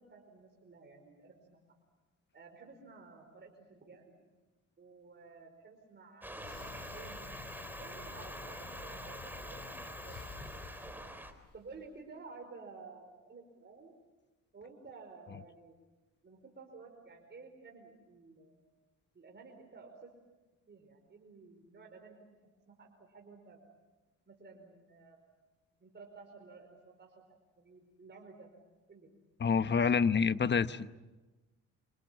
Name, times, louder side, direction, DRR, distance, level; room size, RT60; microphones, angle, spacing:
voice 1, 0.0-1.6 2.3-4.1 4.8-6.7 6.9-7.4 7.8-10.6 11.5-14.0 14.5-15.8 16.2-18.6 19.1-20.1 20.7-22.2 22.4-23.6 24.3-25.2 25.8-27.2 27.6-28.5 28.9-29.1, right 4 dB, 35° right, 2 dB, 4.9 m, -53 dB
sound 1, 6.2-11.3, right 1 dB, 5° right, 4.0 m, -45 dB
sound 2, 6.4-11.8, left 6 dB, 65° left, 4.8 m, -51 dB
voice 2, 29.4-30.9, left 6 dB, 35° left, 12 dB, 1.1 m, -27 dB
28.0 x 26.5 x 7.5 m, 1.2 s
cardioid pair, 90°, 30 cm